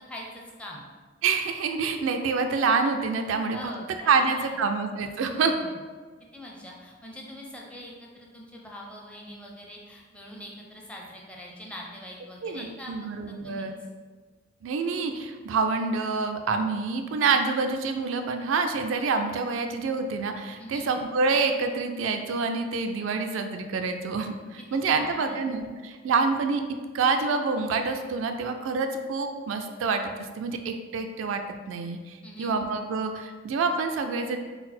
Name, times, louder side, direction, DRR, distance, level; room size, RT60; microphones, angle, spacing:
voice 1, 0.1-0.8 3.5-4.6 5.2-5.8 6.3-12.9 13.3-13.7 20.6-20.9 24.9-25.5 32.2-32.5, equal, 5° left, -2 dB, 0.5 m, -43 dB
voice 2, 1.2-3.7 4.1-5.5 12.4-13.7 14.6-26.6 26.9-31.4 31.7-34.4, right 4 dB, 70° right, 6 dB, 0.3 m, -27 dB
3.9 x 2.0 x 4.2 m, 1.5 s
head